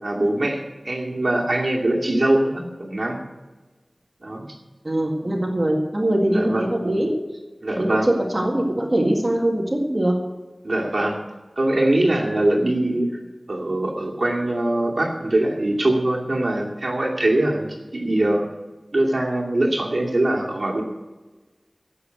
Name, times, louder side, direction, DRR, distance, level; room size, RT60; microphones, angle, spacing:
voice 1, 0.0-3.2 4.2-4.5 6.3-6.7 7.6-8.1 10.6-11.2 11.6-13.2 13.5-18.5 18.9-20.8, right 1 dB, 65° right, -1 dB, 2.4 m, -22 dB
voice 2, 4.8-7.1 7.8-10.2, right 1 dB, 40° right, -1 dB, 2.0 m, -22 dB
15.5 x 6.6 x 8.1 m, 1.2 s
wide cardioid pair, 55°, 0 cm